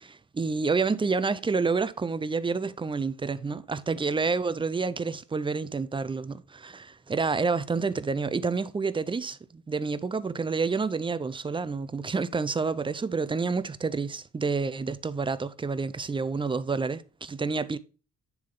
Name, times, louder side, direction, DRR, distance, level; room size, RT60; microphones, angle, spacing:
voice 1, 0.0-17.8, right 4 dB, 15° right, 0.5 m, -29 dB
9.7 x 3.6 x 3.7 m
cardioid pair, 90°, 30 cm